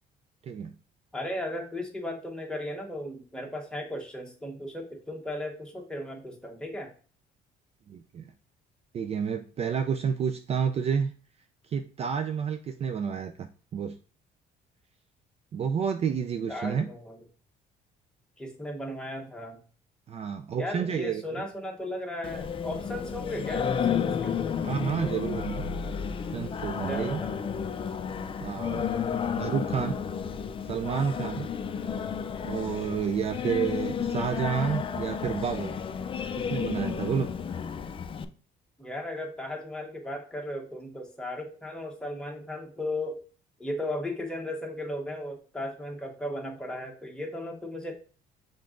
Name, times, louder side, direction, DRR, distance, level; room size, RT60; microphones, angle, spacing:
voice 1, 1.1-6.9 16.5-17.2 18.4-19.6 20.6-24.3 26.8-27.4 38.8-43.2 43.6-47.9, left 1 dB, 5° left, 0 dB, 1.2 m, -36 dB
voice 2, 7.9-8.2 8.9-11.1 11.6-13.5 13.7-13.9 15.5-16.9 20.1-21.4 24.6-25.7 26.3-27.2 28.4-28.9 29.4-29.9 30.6-31.5 32.4-35.8 36.5-37.3, right 7 dB, 40° right, 7 dB, 0.4 m, -30 dB
Singing, 22.2-38.2, left 7 dB, 30° left, 0.4 m, -32 dB
5.7 x 3.7 x 2.5 m, 0.40 s
cardioid pair, 110°, 17 cm